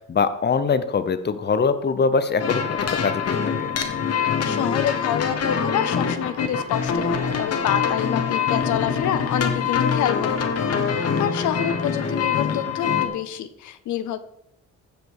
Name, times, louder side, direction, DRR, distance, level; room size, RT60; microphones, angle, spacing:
voice 1, 0.0-3.7, left 5 dB, 35° left, 12 dB, 0.9 m, -23 dB
sound 1, 2.4-13.1, left 6 dB, 55° left, 1.5 m, -24 dB
voice 2, 4.4-14.2, left 11 dB, 75° left, 11 dB, 0.7 m, -27 dB
15.5 x 5.2 x 4.8 m, 0.78 s
cardioid pair, 90°, 30 cm